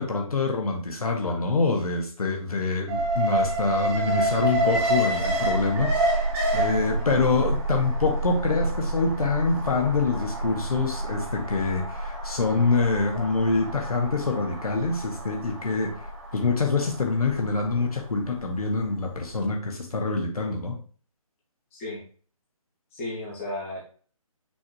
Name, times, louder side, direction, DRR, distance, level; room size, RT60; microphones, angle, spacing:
voice 1, 0.0-6.2 6.5-15.9 16.3-20.8, left 3 dB, 80° left, 2 dB, 1.6 m, -25 dB
Alarm, 2.9-19.0 19.3-19.4, right 1 dB, 25° right, 2.7 m, -28 dB
voice 2, 21.7-22.0 22.9-23.8, left 1 dB, 20° left, -4 dB, 2.4 m, -35 dB
6.2 x 5.1 x 3.2 m, 0.43 s
hypercardioid pair, 165°, 18 cm